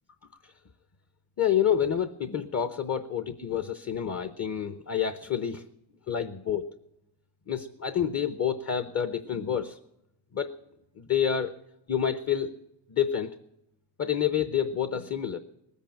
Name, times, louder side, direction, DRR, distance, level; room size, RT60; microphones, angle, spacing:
voice 1, 1.4-5.6 6.1-6.7 7.5-9.8 10.3-10.6 11.0-11.5 11.9-12.6 12.9-13.4 14.0-15.4, left 8 dB, 35° left, 11 dB, 0.7 m, -28 dB
19.5 x 8.3 x 8.7 m, 0.86 s
cardioid pair, 110°, 46 cm